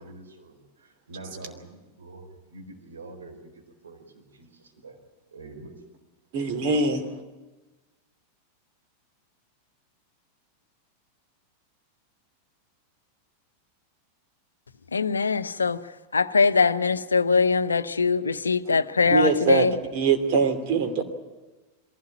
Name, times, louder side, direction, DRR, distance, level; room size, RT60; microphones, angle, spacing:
voice 1, 0.0-5.0 5.3-5.8, right 2 dB, 70° right, 3 dB, 4.3 m, -45 dB
voice 2, 6.3-7.0 19.1-19.7 19.9-21.0, right 5 dB, 45° right, 6 dB, 2.8 m, -22 dB
voice 3, 14.9-19.8, left 4 dB, 75° left, 13 dB, 0.8 m, -22 dB
22.5 x 16.0 x 9.1 m, 1.2 s
figure-of-eight pair, 90°, 0 cm